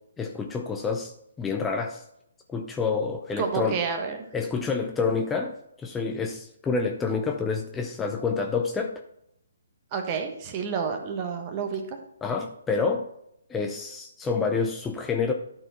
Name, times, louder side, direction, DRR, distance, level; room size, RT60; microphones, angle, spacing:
voice 1, 0.2-2.0 2.5-3.8 4.3-9.0 12.2-13.1 13.5-15.3, left 4 dB, 10° left, 3 dB, 0.6 m, -28 dB
voice 2, 3.4-4.2 9.9-12.0, right 6 dB, 30° right, 4 dB, 1.4 m, -29 dB
12.5 x 4.6 x 4.4 m, 0.77 s
figure-of-eight pair, 135°, 0 cm